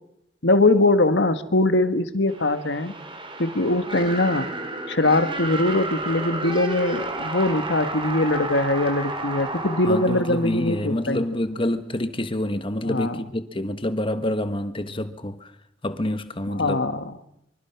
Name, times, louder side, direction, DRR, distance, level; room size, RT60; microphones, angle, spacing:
voice 1, 0.4-2.9 3.4-4.5 4.9-11.2 12.8-13.2 16.5-17.1, left 2 dB, 70° left, 1.6 m, -22 dB
sound 1, 2.3-11.1, right 2 dB, 30° right, 3.3 m, -32 dB
voice 2, 9.9-15.5 15.8-16.8, left 1 dB, 30° left, 1.4 m, -27 dB
25.5 x 24.5 x 6.0 m
head